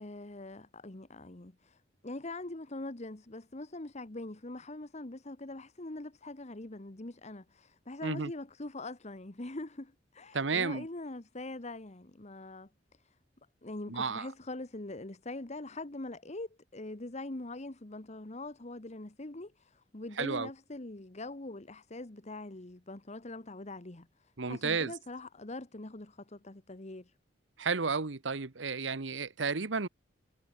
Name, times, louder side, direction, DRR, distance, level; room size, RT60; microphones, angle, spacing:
voice 1, 0.0-12.7 13.0-13.1 13.6-27.1, left 2 dB, 40° left, 1.4 m, -43 dB
voice 2, 10.3-10.9 13.9-14.3 20.2-20.5 24.4-24.9 27.6-29.9, right 4 dB, 90° right, 1.2 m, -32 dB
head